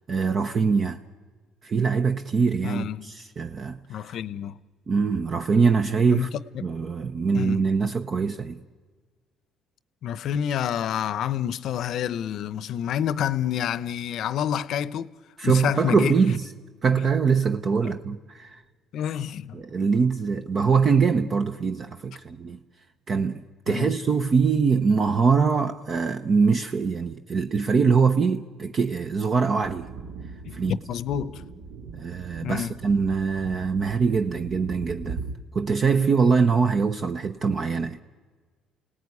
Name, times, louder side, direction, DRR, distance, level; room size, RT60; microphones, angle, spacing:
voice 1, 0.1-1.0 1.6-3.8 4.9-6.3 6.6-8.6 15.4-16.4 16.8-18.6 19.5-22.6 23.1-29.9 30.5-30.8 31.9-35.2 35.5-38.0, right 5 dB, 40° right, 0.9 m, -23 dB
voice 2, 2.6-3.1 3.9-4.6 6.1-6.3 6.5-6.7 7.3-7.6 10.0-15.1 15.4-16.2 17.8-17.9 18.9-19.6 23.7-23.9 30.5-31.4 32.4-32.7, left 9 dB, 65° left, 0.8 m, -28 dB
sound 1, 29.6-35.3, right 4 dB, 75° right, 2.4 m, -39 dB
29.0 x 18.0 x 9.7 m
cardioid pair, 110°, 0 cm